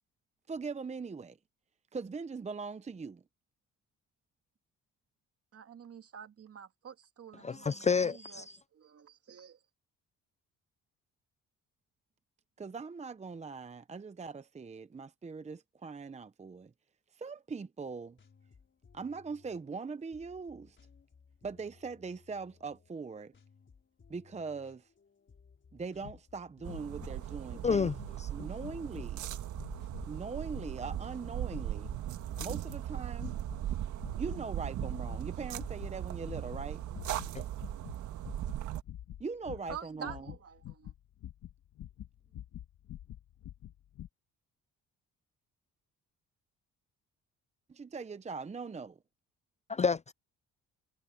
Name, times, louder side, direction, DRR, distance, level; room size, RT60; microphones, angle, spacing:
voice 1, 0.5-1.4 1.9-3.2 12.6-16.7 17.1-18.2 18.9-20.8 21.4-23.3 24.1-24.9 25.7-27.9 28.3-29.2 30.1-31.9 32.4-33.4 34.1-36.8 39.2-40.3 47.7-49.0, right 4 dB, 20° right, 0.7 m, -41 dB
voice 2, 5.5-8.5 8.7-9.6 39.7-40.9, right 7 dB, 50° right, 2.1 m, -48 dB
voice 3, 7.4-8.6 27.6-28.5 37.3-37.4 49.7-50.1, left 5 dB, 25° left, 0.4 m, -30 dB
sound 1, 17.8-37.5, left 5 dB, 40° left, 5.8 m, -62 dB
sound 2, 26.0-26.2 26.6-27.2 27.6-28.1 28.6-29.1 29.5-30.1 30.5-31.1 31.5-32.0 32.3-32.8 33.2-33.7 34.0-34.4 34.8-35.2 35.5-35.9 36.2-36.7 36.9-44.1, left 12 dB, 75° left, 1.7 m, -47 dB
sound 3, 26.6-38.8, right 12 dB, 75° right, 1.7 m, -38 dB
cardioid pair, 90°, 30 cm